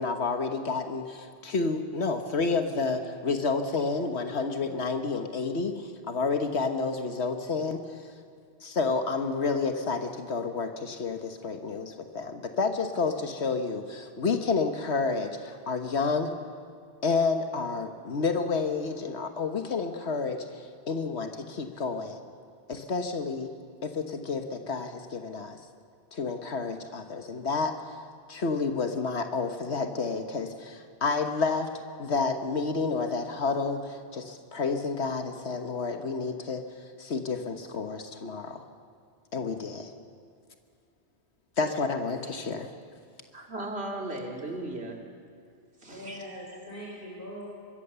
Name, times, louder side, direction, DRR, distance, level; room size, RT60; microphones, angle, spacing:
voice 1, 0.0-7.8 8.6-16.3 17.0-22.2 22.7-23.5 23.8-25.6 26.1-27.7 28.3-31.7 32.0-36.6 37.0-38.6 39.3-39.9 41.6-42.7, left 4 dB, 85° left, 6 dB, 1.6 m, -30 dB
voice 2, 43.3-45.0 45.8-46.2, right 2 dB, 70° right, 1 dB, 3.3 m, -36 dB
voice 3, 45.9-47.4, equal, 55° left, -5 dB, 4.9 m, -41 dB
25.0 x 22.5 x 6.9 m, 2.2 s
omnidirectional pair, 1.1 m